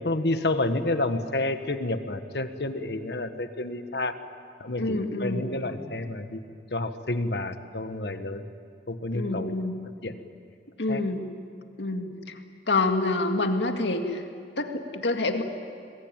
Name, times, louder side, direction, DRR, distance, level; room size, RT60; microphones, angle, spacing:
voice 1, 0.0-4.2 4.6-6.4 6.7-8.4 8.9-9.6 10.0-10.1 10.9-11.0, left 2 dB, 65° left, 9 dB, 1.5 m, -29 dB
voice 2, 4.8-6.0 9.1-9.8 10.8-11.2 11.8-12.4 12.7-14.3 14.6-15.4, left 2 dB, 85° left, 5 dB, 2.1 m, -27 dB
27.5 x 21.5 x 9.0 m, 2.3 s
head